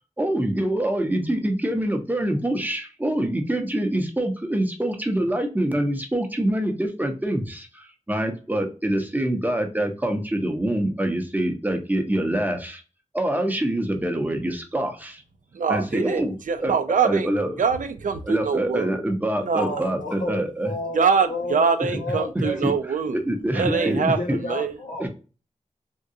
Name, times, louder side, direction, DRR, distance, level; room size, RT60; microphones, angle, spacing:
voice 1, 0.2-12.8 13.1-15.2 15.7-16.4 16.6-16.7 17.0-17.6 18.2-20.7 21.8-22.0 22.3-22.7 23.1-24.0 24.3-24.4 25.0-25.1, right 1 dB, 15° right, 4 dB, 0.7 m, -25 dB
voice 2, 15.5-17.3 17.6-18.9 19.4-19.7 20.9-23.2 23.5-24.2 24.5-24.7, right 5 dB, 85° right, 9 dB, 0.5 m, -23 dB
voice 3, 19.6-22.6 23.6-25.1, left 2 dB, 70° left, 1 dB, 1.1 m, -32 dB
3.6 x 2.3 x 2.6 m, 0.34 s
wide cardioid pair, 85°, 13 cm